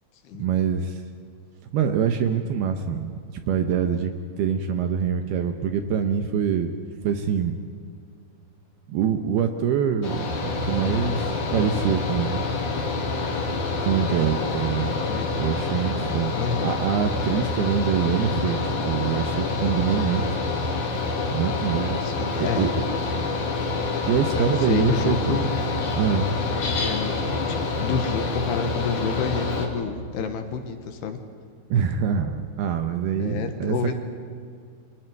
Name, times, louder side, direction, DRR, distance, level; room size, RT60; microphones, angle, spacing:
voice 1, 0.4-1.0 1.7-3.1 3.5-4.1 4.4-6.7 7.0-7.5 8.9-12.4 13.8-15.0 15.3-16.3 16.6-20.2 21.3-22.0 22.6-22.7 24.1-25.4 26.0-26.3 31.7-33.8, right 7 dB, 75° right, 7 dB, 2.5 m, -24 dB
Mechanical fan, 10.0-29.7, left 3 dB, 45° left, 3.6 m, -27 dB
voice 2, 16.4-16.7 22.0-22.7 24.4-25.5 26.8-31.2 33.2-34.0, left 6 dB, 70° left, 7 dB, 3.0 m, -29 dB
29.0 x 25.5 x 4.7 m, 2.3 s
omnidirectional pair, 5.4 m